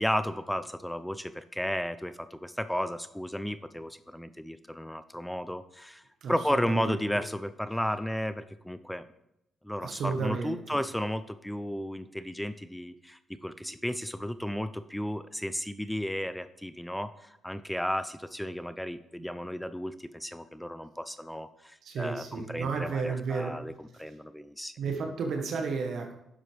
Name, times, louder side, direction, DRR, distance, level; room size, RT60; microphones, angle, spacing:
voice 1, 0.0-6.0 6.3-9.0 9.6-23.7 24.0-24.7, equal, 5° left, 12 dB, 0.4 m, -33 dB
voice 2, 6.2-7.0 9.8-10.6 13.6-13.8 21.8-23.6 23.9-24.2 24.8-26.1, right 4 dB, 65° right, 3 dB, 1.2 m, -33 dB
10.0 x 7.4 x 3.3 m, 0.84 s
cardioid pair, 90°, 0 cm